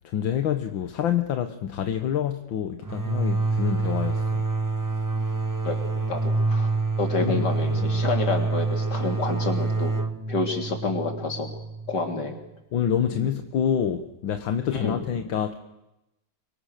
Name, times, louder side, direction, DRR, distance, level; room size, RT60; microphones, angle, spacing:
voice 1, 0.0-4.5 7.2-7.5 7.7-8.0 12.7-15.5, left 9 dB, 80° left, 2.0 m, -27 dB
sound 1, 2.8-12.3, right 3 dB, 30° right, 0.3 m, -27 dB
voice 2, 5.6-10.0 10.3-11.5 11.9-12.3 14.7-15.0, left 3 dB, 60° left, 3.9 m, -29 dB
29.5 x 24.0 x 6.7 m
omnidirectional pair, 2.1 m